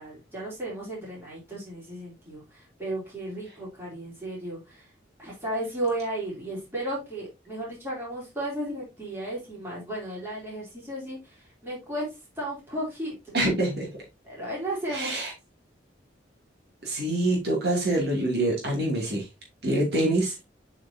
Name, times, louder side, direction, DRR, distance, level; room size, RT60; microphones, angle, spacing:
voice 1, 0.0-4.9 5.2-12.1 12.4-13.4 14.2-15.2, right 1 dB, 15° right, -6 dB, 4.0 m, -34 dB
voice 2, 13.3-13.9 14.9-15.3 16.8-19.3 19.6-20.3, right 1 dB, 60° right, -3 dB, 2.8 m, -25 dB
8.3 x 5.1 x 2.8 m, 0.24 s
head